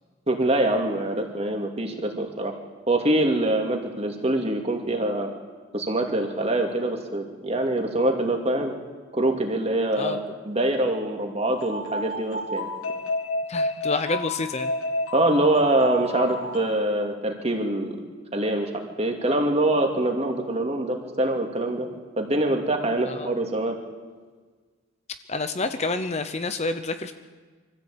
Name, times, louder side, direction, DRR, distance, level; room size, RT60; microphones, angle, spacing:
voice 1, 0.3-2.5 2.9-5.3 5.7-8.7 9.1-12.7 15.1-18.0 18.3-18.7 19.0-21.9 22.2-23.8, right 1 dB, 30° right, 3 dB, 2.5 m, -24 dB
sound 1, 11.5-16.9, left 2 dB, 85° left, 2.2 m, -30 dB
voice 2, 13.5-14.7 23.1-23.3 25.3-27.1, left 3 dB, 30° left, 9 dB, 0.8 m, -28 dB
24.5 x 14.5 x 8.7 m, 1.4 s
head